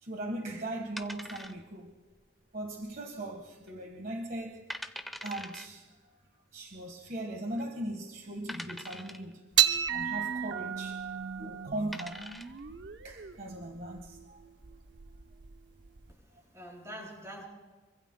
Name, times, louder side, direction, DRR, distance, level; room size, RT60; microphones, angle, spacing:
voice 1, 0.0-1.9 2.5-4.6 5.2-9.4 9.9-11.0 11.4-12.3 13.0-14.4, right 1 dB, 55° right, 3 dB, 1.5 m, -39 dB
sound 1, 1.0-1.9 2.2-2.3 2.9-3.3 3.7-3.8 4.3-4.4 4.7-5.7 6.8-6.9 7.5-7.6 8.5-9.3 11.1-11.3 11.7-12.6, equal, ahead, 0.9 m, -42 dB
sound 2, 9.5-16.1, right 10 dB, 85° right, 0.7 m, -33 dB
voice 2, 16.1-17.4, equal, 20° right, -2 dB, 6.8 m, -46 dB
25.5 x 24.5 x 2.2 m, 1.3 s
head